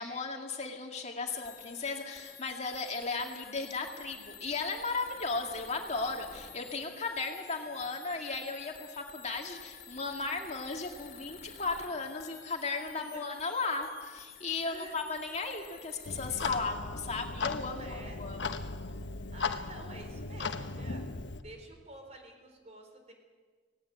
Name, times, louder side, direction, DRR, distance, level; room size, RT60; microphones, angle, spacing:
voice 1, 0.0-18.4, left 3 dB, 40° left, 2 dB, 2.2 m, -36 dB
sound 1, 1.3-16.5, left 8 dB, 55° left, 2.5 m, -51 dB
voice 2, 7.6-7.9 12.9-13.5 14.6-15.0 17.7-18.2 18.9-19.0 19.3-21.0 21.4-23.1, right 1 dB, 40° right, 4 dB, 4.2 m, -50 dB
Clock, 16.0-21.4, left 4 dB, 75° left, 1.2 m, -37 dB
17.5 x 17.5 x 9.5 m, 1.5 s
head